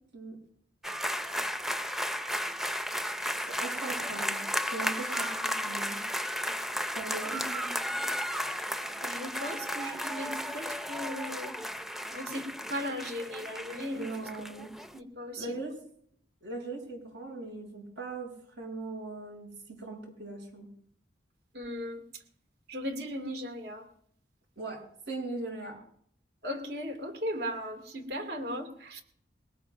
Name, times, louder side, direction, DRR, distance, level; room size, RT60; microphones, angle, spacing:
sound 1, 0.8-15.0, equal, ahead, 0.6 m, -34 dB
voice 1, 3.2-4.4 4.7-6.0 6.9-7.4 14.0-14.7 15.4-15.8 16.4-18.3 18.6-20.7 24.6-24.8 25.1-25.8, right 3 dB, 80° right, 1 dB, 7.1 m, -39 dB
voice 2, 7.3-7.7 9.0-11.5 12.1-14.1 14.9-15.5 21.5-22.0 22.7-23.9 26.4-29.0, equal, 60° right, 4 dB, 2.5 m, -37 dB
22.0 x 18.5 x 2.6 m, 0.64 s
head